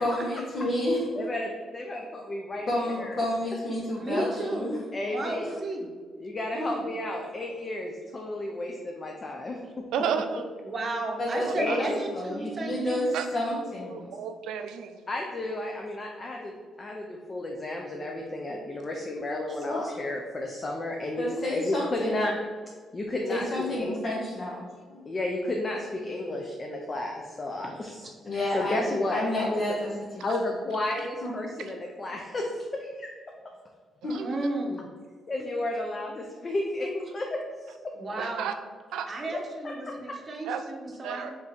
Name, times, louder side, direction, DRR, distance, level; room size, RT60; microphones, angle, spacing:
voice 1, 0.0-1.1 2.7-4.8 11.2-11.9 12.1-14.1 19.7-19.9 21.2-22.2 23.3-25.0 28.2-30.2 31.2-31.3 34.0-34.4, left 1 dB, 50° left, -5 dB, 0.9 m, -30 dB
voice 2, 1.1-2.7 3.0-3.2 4.9-5.5 6.2-9.6 11.6-12.0 15.1-16.5 16.8-22.3 22.9-23.5 23.8-23.9 25.1-28.1 28.5-29.8 30.2-33.1 35.3-37.4 39.6-40.2, left 1 dB, 35° left, 1 dB, 0.5 m, -32 dB
voice 3, 3.9-5.9 6.5-6.9 10.6-13.1 19.5-19.6 27.6-28.1 34.2-34.8 37.9-38.5 39.1-41.3, right 2 dB, 35° right, 1 dB, 0.8 m, -34 dB
voice 4, 9.9-10.4 11.4-11.8 13.1-15.0 31.6-31.7 34.1-34.4 38.2-38.5 38.9-39.1 40.5-40.6 41.0-41.3, right 7 dB, 85° right, 8 dB, 0.3 m, -33 dB
3.5 x 2.8 x 4.1 m, 1.5 s
cardioid pair, 90°, 0 cm